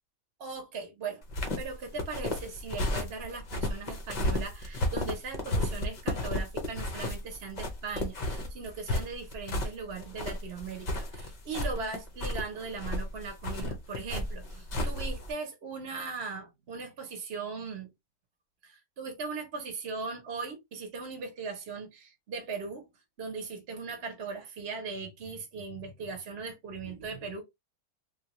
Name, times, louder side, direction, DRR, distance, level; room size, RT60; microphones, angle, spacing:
voice 1, 0.4-1.2 1.6-17.9 18.6-22.9 23.2-27.4, right 4 dB, 45° right, 1.0 m, -39 dB
sound 1, 1.2-15.3, left 1 dB, 50° left, 0.5 m, -33 dB
3.4 x 2.2 x 2.9 m
omnidirectional pair, 1.7 m